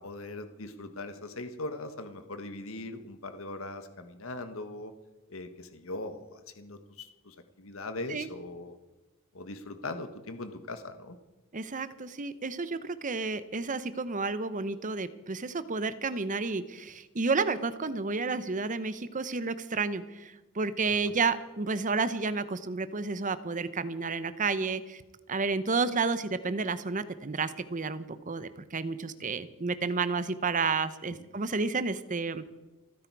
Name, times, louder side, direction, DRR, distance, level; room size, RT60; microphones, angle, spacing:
voice 1, 0.0-4.9 5.3-8.8 9.3-11.2, left 2 dB, 65° left, 8 dB, 1.3 m, -40 dB
voice 2, 11.5-25.0 25.3-32.4, right 4 dB, 35° right, 13 dB, 0.8 m, -31 dB
28.5 x 10.0 x 4.7 m, 1.1 s
head